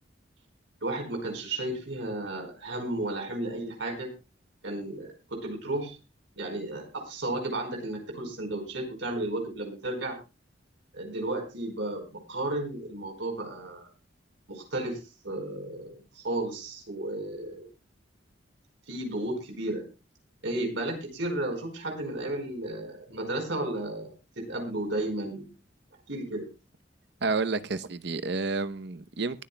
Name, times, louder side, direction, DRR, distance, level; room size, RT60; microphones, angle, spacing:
voice 1, 0.8-4.1 4.6-6.0 6.4-10.2 10.9-13.9 14.5-15.0 15.2-17.7 18.9-19.8 20.4-25.5 26.1-26.5, right 1 dB, 80° right, 4.5 m, -33 dB
voice 2, 27.2-29.4, right 3 dB, 65° right, 0.8 m, -30 dB
21.5 x 11.0 x 2.2 m
head